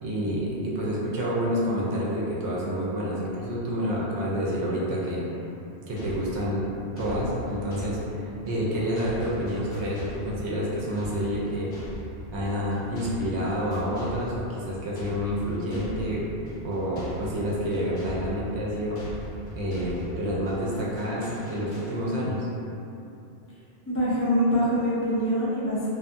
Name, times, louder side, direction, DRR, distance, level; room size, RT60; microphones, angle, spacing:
voice 1, 0.0-5.4 5.9-6.6 7.0-11.7 12.3-16.2 16.6-19.2 19.6-22.5, equal, 80° right, -5 dB, 0.9 m, -28 dB
sound 1, 6.0-22.4, left 1 dB, 55° left, 0.8 m, -41 dB
voice 2, 23.9-25.9, equal, 20° left, -9 dB, 0.3 m, -24 dB
2.6 x 2.4 x 2.5 m, 2.8 s
omnidirectional pair, 1.2 m